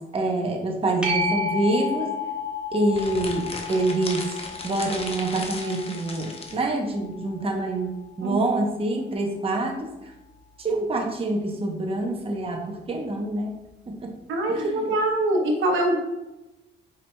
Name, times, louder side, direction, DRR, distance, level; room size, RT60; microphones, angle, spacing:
voice 1, 0.0-2.1 2.7-4.3 4.6-9.9 10.6-13.6 13.9-14.1 14.5-14.8, right 2 dB, 30° right, 1 dB, 0.8 m, -26 dB
sound 1, 1.0-8.2 13.7-13.8, left 3 dB, 5° right, 1.1 m, -32 dB
sound 2, 2.9-6.6, left 3 dB, 30° left, 0.7 m, -36 dB
voice 2, 14.3-16.0, right 1 dB, 80° right, 1 dB, 0.9 m, -23 dB
4.7 x 4.5 x 2.2 m, 0.98 s
cardioid pair, 90°, 20 cm